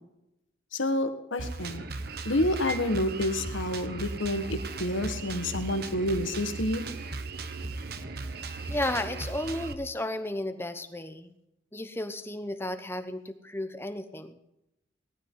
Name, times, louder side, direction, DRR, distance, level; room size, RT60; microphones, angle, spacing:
voice 1, 0.7-1.8 2.3-6.8, left 1 dB, 80° left, 8 dB, 1.6 m, -29 dB
Drum kit, 1.4-9.7, right 3 dB, 50° right, 1.0 m, -37 dB
voice 2, 8.7-11.3 11.7-14.4, left 1 dB, 10° left, 9 dB, 0.9 m, -33 dB
18.5 x 12.5 x 4.0 m, 0.87 s
head